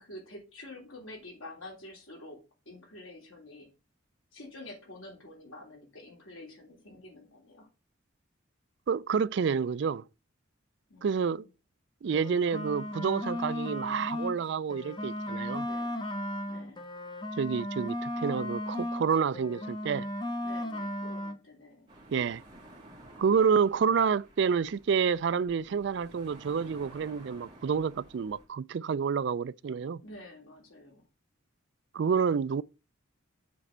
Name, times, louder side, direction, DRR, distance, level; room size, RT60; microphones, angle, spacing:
voice 1, 0.0-2.4 2.7-3.7 4.3-7.7 10.9-11.5 15.6-16.0 16.5-16.8 20.4-21.9 30.0-31.1, left 1 dB, 85° left, 3.4 m, -48 dB
voice 2, 8.9-10.0 11.0-11.4 12.0-15.7 17.4-20.1 22.1-22.4 23.2-30.0 31.9-32.6, right 6 dB, 55° right, 0.3 m, -28 dB
sound 1, 12.0-14.4 14.7-19.1 19.3-21.4, left 1 dB, 20° left, 0.8 m, -35 dB
sound 2, 21.9-28.5, right 1 dB, 25° right, 2.5 m, -53 dB
7.3 x 4.3 x 6.6 m
head